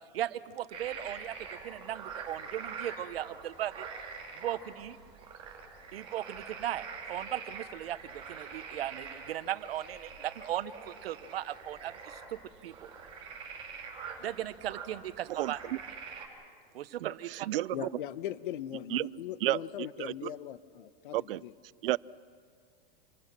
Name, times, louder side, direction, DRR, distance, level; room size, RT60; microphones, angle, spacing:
voice 1, 0.1-3.9 4.4-5.0 5.9-12.9 14.2-15.6 16.7-17.5, right 12 dB, 85° right, 13 dB, 1.2 m, -37 dB
sound 1, 0.7-16.3, right 5 dB, 20° right, 4.2 m, -45 dB
voice 2, 15.4-15.8 17.0-17.9 18.9-19.1 19.4-20.3 21.1-21.4 21.8-22.0, right 15 dB, 70° right, 22 dB, 0.5 m, -32 dB
voice 3, 17.7-21.5, left 11 dB, 60° left, 14 dB, 1.0 m, -40 dB
28.0 x 21.5 x 6.1 m, 2.3 s
supercardioid pair, 170°, 29 cm